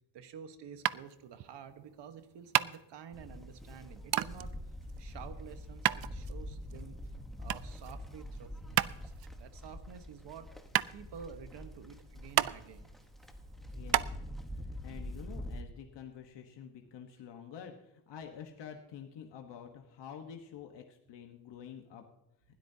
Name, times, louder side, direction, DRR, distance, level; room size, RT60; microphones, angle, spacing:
voice 1, 0.1-4.6 5.0-7.0 7.4-10.5 10.9-12.9, right 7 dB, 80° right, 9 dB, 1.3 m, -50 dB
sound 1, 0.8-14.1, right 13 dB, 60° right, 0.5 m, -34 dB
Livestock farm animals working animals, 3.1-15.6, left 1 dB, ahead, 1.1 m, -45 dB
voice 2, 13.7-14.2 14.6-22.0, left 8 dB, 85° left, 4 dB, 1.3 m, -48 dB
20.0 x 12.5 x 2.8 m, 0.91 s
cardioid pair, 115°, 41 cm